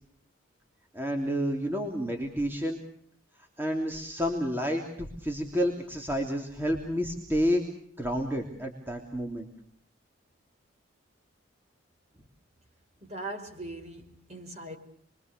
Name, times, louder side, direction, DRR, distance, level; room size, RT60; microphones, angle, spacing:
voice 1, 0.9-2.8 3.6-7.6 8.0-9.5, equal, 10° right, 3.0 m, -30 dB
voice 2, 13.0-14.8, right 2 dB, 35° right, 5.0 m, -40 dB
29.0 x 23.5 x 6.7 m
head